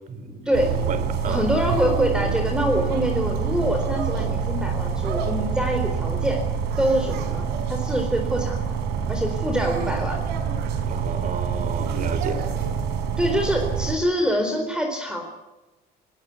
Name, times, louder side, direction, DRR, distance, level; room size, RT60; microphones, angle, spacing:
voice 1, 0.1-0.4 0.9-1.4 10.9-12.4, right 5 dB, 50° right, 3.4 m, -31 dB
sound 1, 0.5-14.0, right 6 dB, 90° right, 4.1 m, -26 dB
voice 2, 1.2-6.4 6.8-8.8 9.1-10.2 13.2-15.2, equal, 5° right, 4.2 m, -25 dB
20.0 x 19.0 x 8.4 m
cardioid pair, 110°, 17 cm